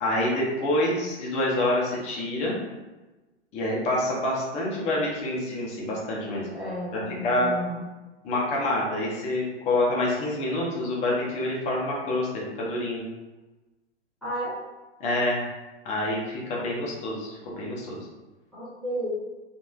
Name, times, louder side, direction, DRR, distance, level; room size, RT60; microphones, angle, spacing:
voice 1, 0.0-2.6 3.5-6.4 6.9-7.5 8.2-13.0 15.0-15.4 15.8-18.0, left 1 dB, 20° left, -4 dB, 0.7 m, -27 dB
voice 2, 6.5-7.8 14.2-14.6 18.5-19.1, equal, ahead, -11 dB, 1.0 m, -32 dB
3.0 x 2.6 x 2.3 m, 1.1 s
figure-of-eight pair, 105°, 34 cm